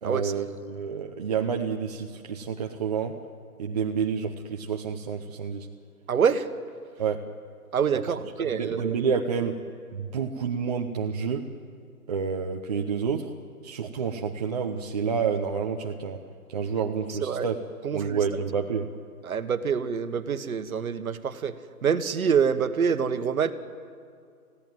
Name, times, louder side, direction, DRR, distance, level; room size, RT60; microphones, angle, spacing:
voice 1, 0.0-3.2 3.6-5.7 7.0-7.2 7.9-8.0 8.4-9.6 9.9-11.5 12.1-13.3 13.6-16.2 16.5-17.6 17.9-18.9, right 6 dB, 25° right, 1 dB, 0.8 m, -29 dB
voice 2, 6.1-6.5 7.7-8.9 17.2-17.5 17.8-18.2 19.2-23.5, right 7 dB, 65° right, 11 dB, 1.5 m, -26 dB
27.5 x 16.5 x 9.3 m, 2.3 s
hypercardioid pair, 160°, 46 cm